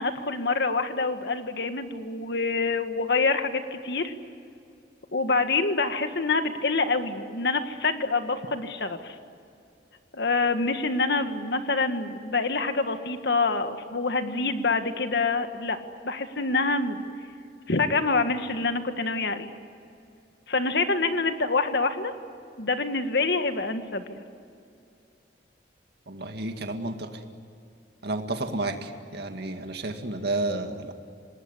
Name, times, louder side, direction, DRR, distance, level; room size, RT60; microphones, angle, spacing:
voice 1, 0.0-4.1 5.1-9.2 10.1-15.8 16.0-17.1 17.7-19.5 20.5-22.1 22.6-24.2, left 3 dB, 65° left, 8 dB, 1.8 m, -26 dB
voice 2, 26.1-27.1 28.0-30.9, right 2 dB, 65° right, 5 dB, 2.2 m, -31 dB
27.0 x 19.5 x 9.9 m, 2.5 s
head